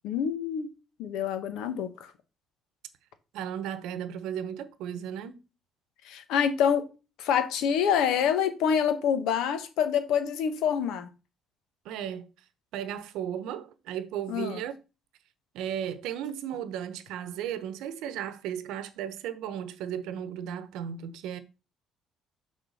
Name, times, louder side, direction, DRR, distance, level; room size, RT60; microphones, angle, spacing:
voice 1, 0.0-0.7 1.0-2.1 6.0-6.9 7.2-11.1 14.3-14.6, left 8 dB, 75° left, 1.1 m, -26 dB
voice 2, 3.3-5.4 11.8-12.3 12.7-14.7 15.5-21.4, right 9 dB, 80° right, 0.9 m, -35 dB
6.6 x 3.7 x 6.4 m
cardioid pair, 155°, 0 cm